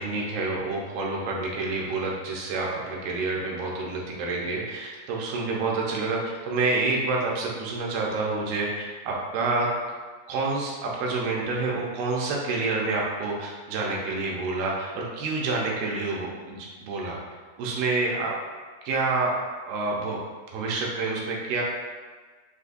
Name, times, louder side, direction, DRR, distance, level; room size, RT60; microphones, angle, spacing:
voice 1, 0.0-9.7 10.3-17.2 17.6-18.3 18.8-19.3 19.6-20.2 20.5-21.6, right 3 dB, 80° right, -3 dB, 2.6 m, -28 dB
6.5 x 2.7 x 2.5 m, 1.4 s
omnidirectional pair, 4.3 m